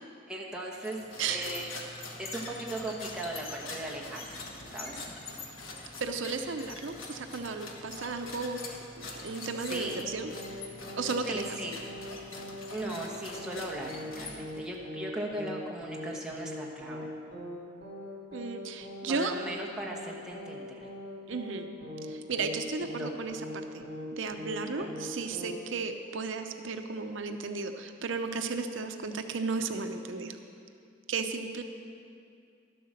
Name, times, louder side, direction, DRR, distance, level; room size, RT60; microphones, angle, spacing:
voice 1, 0.3-1.0 1.2-1.7 2.2-4.2 4.7-5.0 9.7-10.0 11.3-11.7 12.7-17.1 19.1-20.9 23.0-23.2 24.6-25.0, right 1 dB, 5° right, -3 dB, 1.1 m, -38 dB
sound 1, 0.8-14.7, left 3 dB, 90° left, 1.4 m, -44 dB
voice 2, 1.2-1.5 6.0-8.6 9.0-10.3 11.0-11.6 18.3-19.4 21.3-21.7 22.0-23.5 23.7-23.8 24.1-30.4 31.1-31.6, right 4 dB, 75° right, 6 dB, 0.6 m, -34 dB
sound 2, 9.8-10.1 10.3-10.6 10.8-11.1 11.3-11.6 11.8-12.1 12.3-12.6 12.8-13.1 13.3-13.6 13.8-14.1 14.3-14.6 14.8-15.1 15.3-15.6 15.8-16.1 16.3-16.6 16.8-17.1 17.3-17.6 17.8-18.1 18.3-18.6 18.8-19.1 19.3-19.6 19.8-20.1 20.3-20.6 20.8-21.1 21.3-21.6 21.8-22.1 22.3-22.6 22.8-23.1 23.3-23.6 23.8-24.1 24.3-24.6 24.8-25.1 25.3-25.6, equal, 45° right, 3.1 m, -42 dB
11.5 x 7.8 x 6.5 m, 2.4 s
head